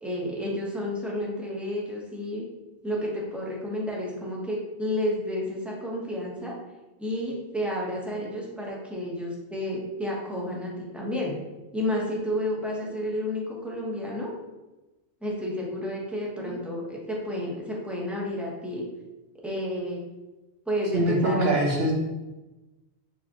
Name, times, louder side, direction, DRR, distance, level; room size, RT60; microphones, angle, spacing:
voice 1, 0.0-2.4 2.8-6.6 7.0-11.4 11.7-14.3 15.2-18.9 19.4-20.0 20.7-21.5, left 1 dB, ahead, -4 dB, 0.8 m, -31 dB
voice 2, 20.9-21.9, right 1 dB, 65° right, 0 dB, 1.1 m, -23 dB
4.7 x 3.6 x 2.9 m, 1.1 s
omnidirectional pair, 1.1 m